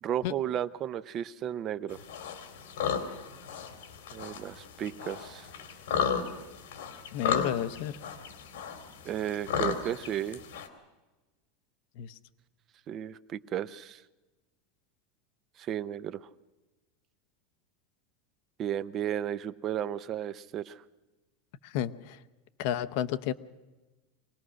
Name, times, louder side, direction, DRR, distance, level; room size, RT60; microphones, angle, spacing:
voice 1, 0.0-2.0 4.1-5.5 9.0-10.4 12.9-14.0 15.6-16.2 18.6-20.8, right 10 dB, 25° right, 15 dB, 0.6 m, -34 dB
sound 1, 1.9-10.7, left 7 dB, 75° left, 2.7 m, -34 dB
voice 2, 7.1-8.0 12.0-12.1 21.6-22.2 22.6-23.3, left 11 dB, 50° left, 11 dB, 0.8 m, -31 dB
24.0 x 18.5 x 6.3 m, 1.2 s
supercardioid pair, 170°, 0 cm